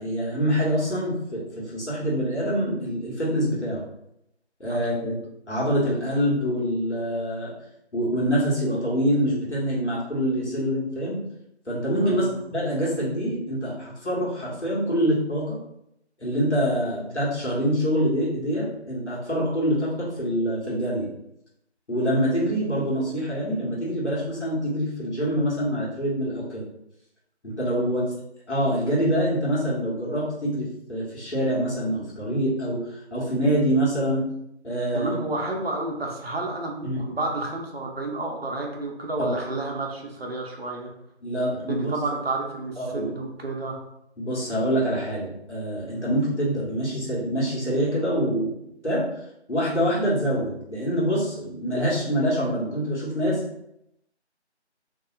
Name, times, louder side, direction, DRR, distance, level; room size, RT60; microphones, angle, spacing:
voice 1, 0.0-3.8 4.6-5.2 5.5-7.5 7.9-11.2 11.7-15.6 16.2-21.1 21.9-26.7 27.4-28.0 28.5-34.2 34.6-35.2 36.8-37.0 39.2-39.3 41.2-41.9 42.8-43.1 44.2-48.5 48.8-49.0 49.5-53.4, equal, 80° left, -6 dB, 1.3 m, -25 dB
voice 2, 4.7-5.1 12.0-12.4 27.8-28.2 34.9-40.9 41.7-43.8, right 2 dB, 60° right, 0 dB, 0.7 m, -31 dB
2.7 x 2.3 x 2.4 m, 0.80 s
figure-of-eight pair, 165°, 34 cm